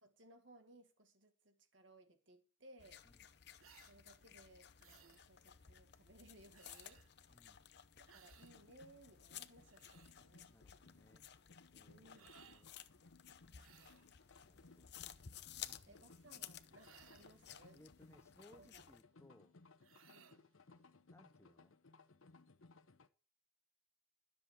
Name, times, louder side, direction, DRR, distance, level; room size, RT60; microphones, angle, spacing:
voice 1, 0.0-3.0 3.9-7.0 8.1-10.6 11.9-12.4 14.3-15.2 15.9-17.8 18.5-18.8 20.1-20.4, right 1 dB, 60° right, 1.9 m, -64 dB
sound 1, 2.8-19.0, left 10 dB, 50° left, 0.7 m, -57 dB
sound 2, 3.6-4.0 4.8-5.2 6.5-7.1 8.1-8.5 9.5-10.1 12.1-12.7 13.5-14.1 16.7-17.4 19.8-20.4, right 8 dB, 85° right, 1.1 m, -64 dB
voice 2, 7.3-7.7 10.5-11.3 11.7-12.7 13.4-13.7 14.5-14.9 15.6-16.1 17.7-19.5 21.1-21.7, left 1 dB, 15° left, 0.6 m, -67 dB
sound 3, 8.4-23.1, left 3 dB, 75° left, 0.9 m, -65 dB
12.5 x 7.4 x 6.5 m
head